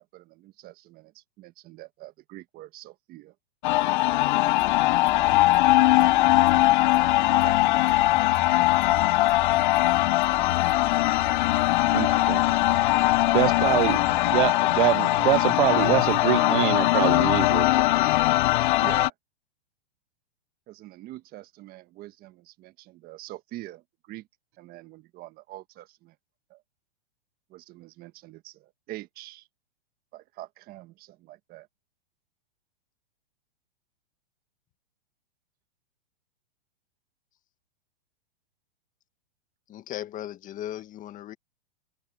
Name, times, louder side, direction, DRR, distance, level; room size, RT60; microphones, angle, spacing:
voice 1, 0.0-3.3 7.2-8.3 13.4-13.6 17.0-17.3 18.8-19.1 20.7-24.3 24.6-26.2 26.5-26.6 27.5-29.5 30.1-31.7, right 16 dB, 30° right, 1.4 m, -44 dB
sound 1, 3.6-19.1, left 18 dB, 50° left, 0.5 m, -21 dB
sound 2, 4.5-14.5, right 1 dB, ahead, 6.1 m, -45 dB
voice 2, 11.9-12.4 13.3-14.0 14.3-17.9, right 16 dB, 55° right, 0.7 m, -25 dB
voice 3, 39.7-41.4, left 12 dB, 25° left, 2.0 m, -37 dB
hypercardioid pair, 130°, 31 cm